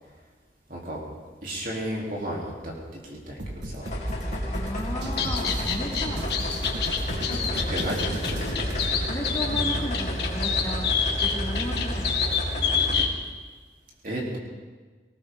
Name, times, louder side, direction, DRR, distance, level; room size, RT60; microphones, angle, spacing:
voice 1, 0.7-1.0 1.4-2.7 3.0-3.9 7.7-8.5 14.0-14.4, right 1 dB, 50° right, -3 dB, 3.6 m, -33 dB
sound 1, 3.4-9.0, right 1 dB, 80° right, 1.7 m, -34 dB
sound 2, 3.8-13.0, equal, 40° left, 2.8 m, -31 dB
voice 2, 4.5-6.4 7.3-7.8 9.1-10.9 11.2-12.2, equal, 15° left, -5 dB, 3.5 m, -34 dB
sound 3, 5.0-13.1, left 6 dB, 70° left, 1.8 m, -28 dB
19.5 x 18.5 x 3.9 m, 1.4 s
head